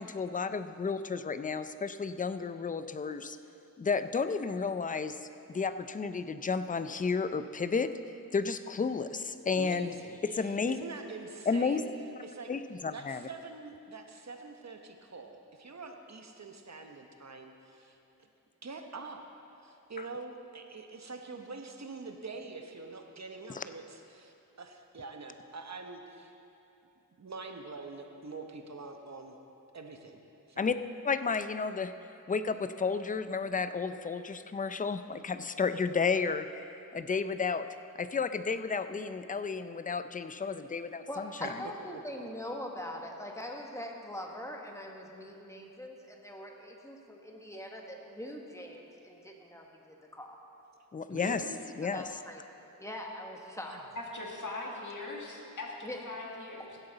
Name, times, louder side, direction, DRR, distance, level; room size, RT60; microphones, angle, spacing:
voice 1, 0.0-3.4 3.8-5.2 5.5-7.9 8.3-9.9 10.3-10.8 11.5-11.8 12.5-13.3 23.5-23.6 30.6-30.8 31.0-31.9 32.3-36.7 36.9-37.7 38.0-41.5 50.9-51.4 51.8-52.0, left 5 dB, 25° left, 11 dB, 0.4 m, -32 dB
voice 2, 9.5-11.9 12.2-12.5 12.9-18.0 18.6-19.3 19.6-26.3 27.2-29.4 29.7-30.2 30.5-30.7 42.2-42.3 51.1-51.6 53.6-53.9, right 3 dB, 50° right, 4 dB, 1.0 m, -45 dB
voice 3, 41.1-50.4 51.8-52.4 52.8-53.8 55.8-56.1, left 1 dB, 10° left, 1 dB, 1.3 m, -42 dB
voice 4, 54.0-56.8, left 2 dB, 60° left, -2 dB, 1.8 m, -41 dB
16.5 x 7.9 x 4.0 m, 2.8 s
wide cardioid pair, 70°, 35 cm